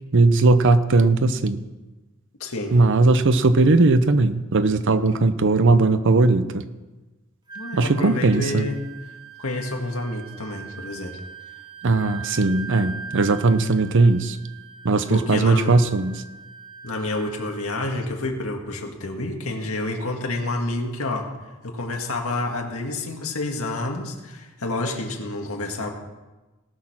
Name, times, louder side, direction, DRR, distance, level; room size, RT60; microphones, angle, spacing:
voice 1, 0.1-1.6 2.7-6.6 7.7-8.7 11.8-14.4 14.8-16.1, right 3 dB, 60° right, 12 dB, 0.7 m, -18 dB
voice 2, 2.4-2.8 7.5-8.8 9.4-11.2 15.1-15.7 16.8-21.3 21.6-25.9, left 2 dB, 75° left, 2 dB, 1.8 m, -29 dB
Wind instrument woodwind instrument, 7.5-17.9, right 6 dB, 20° right, 1.0 m, -41 dB
18.0 x 6.5 x 6.0 m, 1.2 s
head